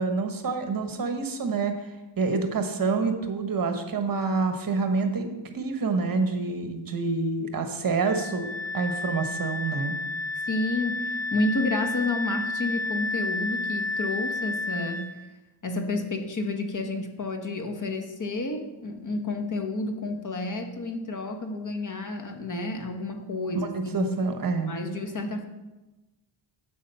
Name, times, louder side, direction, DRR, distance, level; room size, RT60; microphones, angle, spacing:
voice 1, 0.0-1.7 2.2-8.5 8.7-10.0 23.5-24.8, right 4 dB, 45° right, 6 dB, 1.1 m, -27 dB
Wind instrument woodwind instrument, 8.0-15.1, left 2 dB, 85° left, 2.5 m, -31 dB
voice 2, 10.5-15.1 15.6-24.1 24.7-25.5, left 2 dB, 40° left, 5 dB, 1.2 m, -30 dB
8.5 x 8.1 x 5.5 m, 1.1 s
wide cardioid pair, 145°, 47 cm